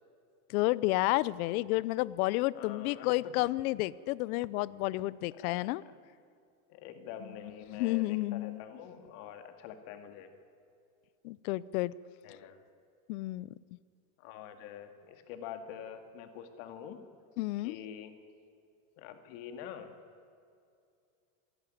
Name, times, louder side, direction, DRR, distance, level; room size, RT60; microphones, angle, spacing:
voice 1, 0.5-5.8 7.7-8.6 11.2-11.9 13.1-13.5 17.4-17.8, left 19 dB, 80° left, 20 dB, 0.7 m, -31 dB
voice 2, 2.5-3.5 5.3-6.0 6.7-10.3 12.2-12.6 14.2-17.0 17.6-18.1 19.0-19.9, left 9 dB, 65° left, 7 dB, 2.2 m, -46 dB
27.5 x 11.0 x 9.3 m, 2.4 s
supercardioid pair, 150°, 43 cm